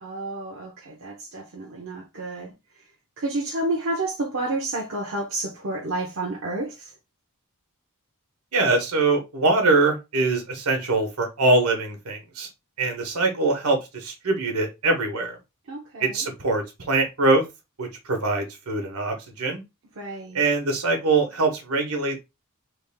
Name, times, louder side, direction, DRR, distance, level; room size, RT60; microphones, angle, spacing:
voice 1, 0.0-2.5 3.2-6.9 15.7-16.2 20.0-20.4, right 2 dB, 60° right, 0.8 m, -30 dB
voice 2, 8.5-12.5 12.8-15.4 16.0-17.4 17.8-19.6 20.3-22.2, right 3 dB, 80° right, 1.2 m, -23 dB
3.4 x 2.5 x 3.4 m
head